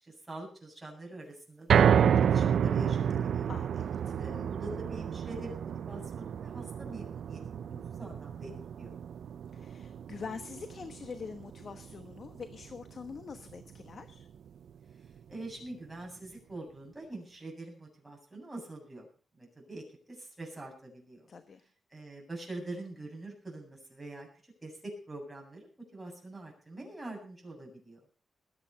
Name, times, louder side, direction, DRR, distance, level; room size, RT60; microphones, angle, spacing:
voice 1, 0.0-3.5 4.2-8.5 8.8-9.0 15.0-19.1 19.4-21.3 21.9-24.3 24.6-28.0, right 2 dB, 10° right, -1 dB, 7.8 m, -44 dB
sound 1, 1.7-13.9 14.3-14.4 14.9-15.0, right 8 dB, 75° right, 0.6 m, -30 dB
voice 2, 3.5-4.5 9.5-14.3 21.3-21.6, left 5 dB, 55° left, 9 dB, 1.2 m, -44 dB
21.0 x 8.9 x 5.5 m, 0.41 s
wide cardioid pair, 125°, 0 cm